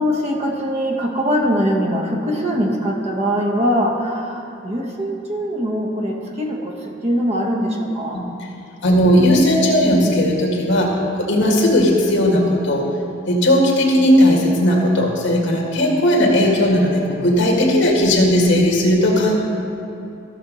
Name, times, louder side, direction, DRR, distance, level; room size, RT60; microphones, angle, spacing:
voice 1, 0.0-8.3, equal, 35° right, 0 dB, 1.1 m, -22 dB
voice 2, 8.8-10.9 11.2-12.8 13.3-19.4, left 1 dB, 65° left, -1 dB, 1.9 m, -16 dB
15.0 x 6.2 x 4.0 m, 2.8 s
head